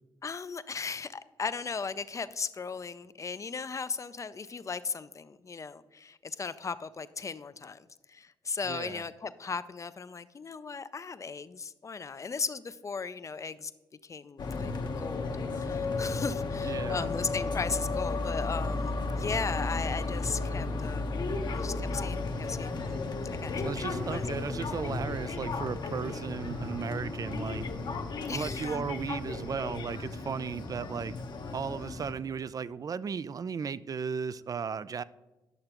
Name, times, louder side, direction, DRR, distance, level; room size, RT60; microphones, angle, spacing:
voice 1, 0.2-13.7 14.0-21.2 21.5-23.0 23.4-23.7 24.1-24.3 28.2-28.7, left 5 dB, 35° left, 14 dB, 0.5 m, -37 dB
voice 2, 8.7-9.0 16.6-17.1 23.6-27.7 28.3-31.2 31.5-35.0, right 6 dB, 45° right, 18 dB, 0.4 m, -35 dB
sound 1, 14.4-32.1, left 3 dB, 55° left, 0.9 m, -34 dB
sound 2, 23.3-28.7, right 2 dB, 60° right, 1.5 m, -53 dB
10.5 x 6.6 x 2.9 m, 1.1 s
supercardioid pair, 55°, 9 cm